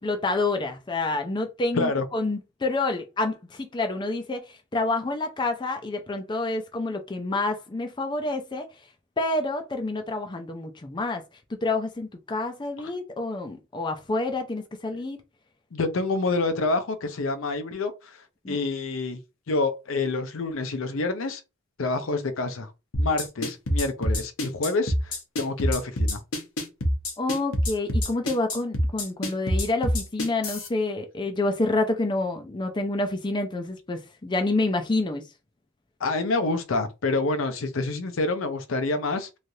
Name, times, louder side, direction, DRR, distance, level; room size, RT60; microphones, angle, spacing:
voice 1, 0.0-8.7 9.2-11.2 11.5-15.2 18.4-18.6 27.2-35.2, left 2 dB, 20° left, 0.4 m, -28 dB
voice 2, 1.7-2.0 15.7-18.2 18.5-19.2 19.5-21.4 21.8-22.7 23.0-26.2 36.0-39.4, left 3 dB, 70° left, 0.5 m, -27 dB
sound 1, 22.9-30.7, equal, 90° left, 1.0 m, -25 dB
3.1 x 2.4 x 2.7 m
head